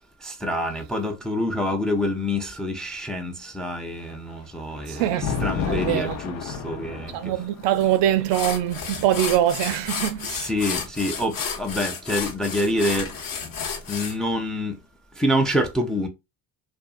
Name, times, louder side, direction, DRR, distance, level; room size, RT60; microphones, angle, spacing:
voice 1, 0.2-7.3 10.2-13.1 13.9-14.7 15.2-16.1, left 1 dB, ahead, 0.4 m, -26 dB
Thunder, 4.0-11.2 12.2-14.0, left 7 dB, 75° left, 0.8 m, -34 dB
voice 2, 4.9-5.3 5.7-6.2 7.1-10.3, right 12 dB, 60° right, 0.5 m, -23 dB
sound 1, 7.8-7.9 8.3-14.2, left 6 dB, 40° left, 0.9 m, -31 dB
2.6 x 2.3 x 2.4 m
hypercardioid pair, 65°, 50 cm